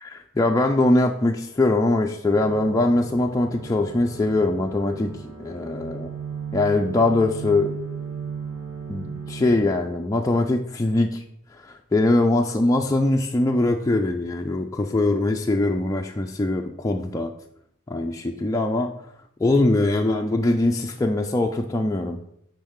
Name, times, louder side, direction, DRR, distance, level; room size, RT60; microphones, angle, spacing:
voice 1, 0.0-5.1 5.4-6.1 6.5-7.7 8.9-11.2 11.6-17.3 17.9-18.9 19.4-22.2, left 2 dB, 15° left, 2 dB, 0.3 m, -22 dB
sound 1, 2.3-9.6, right 6 dB, 65° right, 1.5 m, -36 dB
8.5 x 5.3 x 3.6 m, 0.73 s
head